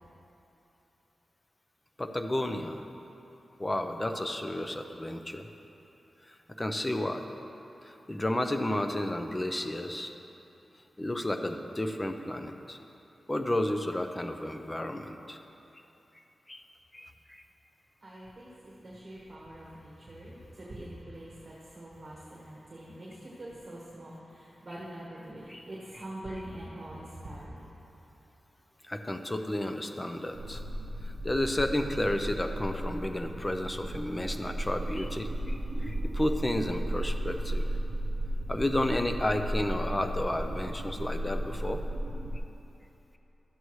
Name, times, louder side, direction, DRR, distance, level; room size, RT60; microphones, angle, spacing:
voice 1, 2.0-2.8 3.6-5.5 6.3-7.2 7.8-10.1 11.0-12.8 13.3-15.4 16.5-16.7 16.9-17.4 25.5-25.7 25.9-26.0 28.9-30.6 31.0-37.7 38.5-41.8, left 1 dB, 20° left, 6 dB, 0.6 m, -32 dB
voice 2, 18.0-27.6, right 1 dB, 35° right, -6 dB, 1.4 m, -44 dB
sound 1, 30.3-42.4, right 1 dB, 55° right, 0.7 m, -34 dB
12.5 x 8.0 x 3.2 m, 3.0 s
wide cardioid pair, 90°, 0 cm